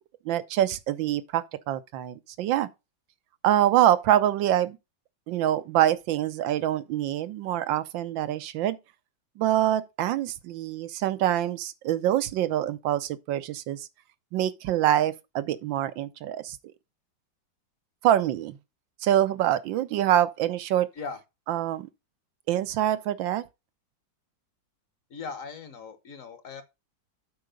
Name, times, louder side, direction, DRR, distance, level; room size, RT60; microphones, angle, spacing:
voice 1, 0.2-2.7 3.4-4.8 5.3-8.8 9.4-13.9 14.3-16.6 18.0-18.6 19.0-20.9 21.5-21.9 22.5-23.4, right 12 dB, 90° right, 1.5 m, -25 dB
voice 2, 25.1-26.6, left 5 dB, 50° left, 1.3 m, -39 dB
8.0 x 4.7 x 5.1 m
omnidirectional pair, 2.0 m